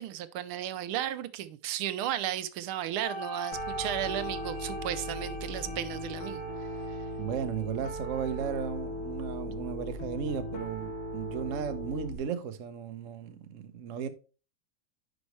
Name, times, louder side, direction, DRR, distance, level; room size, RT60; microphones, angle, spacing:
voice 1, 0.0-6.4, right 12 dB, 85° right, 1.5 m, -34 dB
sound 1, 3.0-8.1, left 1 dB, 25° left, 2.4 m, -42 dB
Piano, 3.5-12.2, equal, 70° left, 2.8 m, -38 dB
voice 2, 7.2-14.1, right 7 dB, 60° right, 0.8 m, -35 dB
9.8 x 5.3 x 3.1 m
omnidirectional pair, 2.4 m